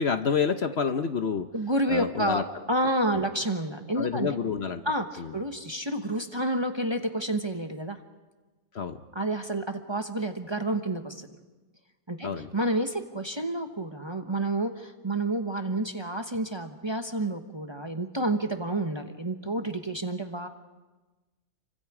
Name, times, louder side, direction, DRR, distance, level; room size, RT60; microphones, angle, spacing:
voice 1, 0.0-1.5 1.9-2.4 3.1-3.2 4.0-4.8 5.2-5.3 8.7-9.0 12.2-12.5, left 6 dB, 50° left, 8 dB, 1.0 m, -28 dB
voice 2, 1.5-2.4 2.7-4.3 4.8-8.0 9.1-11.3 12.1-20.5, right 1 dB, 20° right, 6 dB, 1.0 m, -29 dB
30.0 x 24.5 x 4.9 m, 1.2 s
omnidirectional pair, 1.5 m